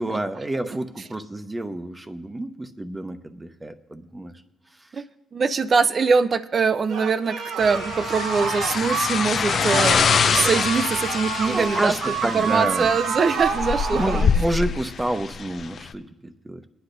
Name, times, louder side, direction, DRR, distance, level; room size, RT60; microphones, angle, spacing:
voice 1, 0.0-4.4 4.8-5.0 11.5-13.0 13.9-16.7, right 1 dB, 15° right, 8 dB, 0.8 m, -29 dB
voice 2, 5.3-12.0 12.3-14.3, right 5 dB, 45° right, 12 dB, 0.5 m, -23 dB
sound 1, 6.9-14.3, right 5 dB, 80° right, 1.0 m, -28 dB
sound 2, 7.6-15.9, left 6 dB, 55° left, 0.4 m, -25 dB
21.0 x 10.0 x 2.6 m, 1.1 s
cardioid pair, 90°, 0 cm